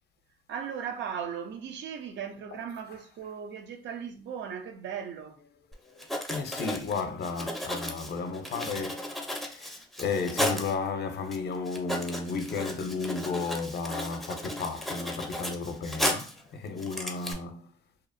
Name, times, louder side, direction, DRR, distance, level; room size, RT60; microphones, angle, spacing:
voice 1, 0.5-5.4, right 7 dB, 65° right, 0.5 m, -37 dB
Writing, 5.7-5.8 6.0-10.7 11.3-11.4 11.7-16.4 16.8-17.3, left 1 dB, ahead, 0.5 m, -34 dB
voice 2, 5.8-9.2 9.5-17.7, left 4 dB, 55° left, 0.5 m, -33 dB
2.7 x 2.0 x 2.5 m
cardioid pair, 90°, 20 cm